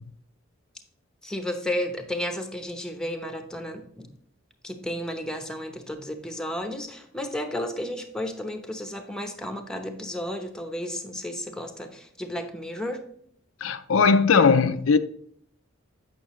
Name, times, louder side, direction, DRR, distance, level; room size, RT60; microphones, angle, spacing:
voice 1, 1.2-4.1 4.6-13.0, left 1 dB, 5° left, 0.9 m, -33 dB
voice 2, 13.6-15.0, left 5 dB, 70° left, 0.5 m, -19 dB
8.6 x 6.0 x 3.1 m
head